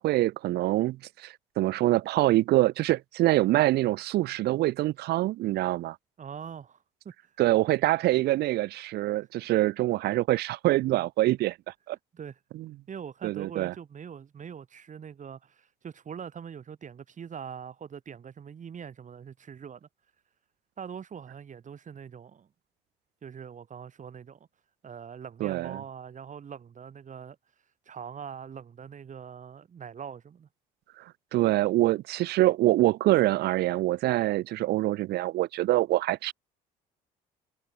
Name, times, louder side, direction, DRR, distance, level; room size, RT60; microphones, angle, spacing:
voice 1, 0.0-6.0 7.4-11.6 11.9-12.0 12.5-12.7 13.2-13.7 25.4-25.8 31.3-36.3, right 16 dB, 60° right, 1.0 m, -25 dB
voice 2, 6.2-6.8 7.0-7.1 12.1-12.4 12.9-19.9 20.8-22.5 23.2-24.4 24.8-27.4 27.9-30.5, right 7 dB, 45° right, 5.6 m, -42 dB
hypercardioid pair, 60°, 18 cm